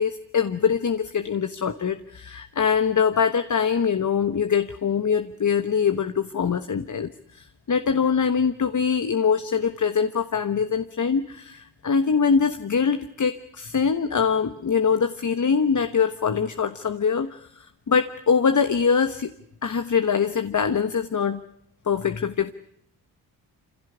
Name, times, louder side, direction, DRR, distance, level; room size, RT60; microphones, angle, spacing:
voice 1, 0.0-19.3 19.6-21.4 21.9-22.5, left 6 dB, 45° left, 9 dB, 1.3 m, -23 dB
26.0 x 16.5 x 10.0 m, 0.71 s
cardioid pair, 60°, 42 cm